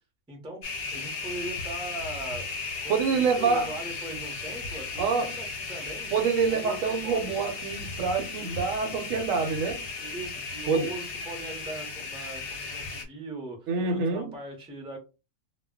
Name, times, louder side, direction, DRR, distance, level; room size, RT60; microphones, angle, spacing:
voice 1, 0.3-0.6 0.9-2.5 2.8-6.1 6.5-7.4 8.4-9.0 10.0-15.0, right 2 dB, 5° right, 0.4 m, -40 dB
sound 1, 0.6-13.0, left 4 dB, 55° left, 0.7 m, -36 dB
voice 2, 2.9-3.7 5.0-5.3 6.1-9.8 10.7-10.9 13.7-14.3, right 5 dB, 75° right, 0.9 m, -26 dB
2.2 x 2.1 x 3.5 m
omnidirectional pair, 1.4 m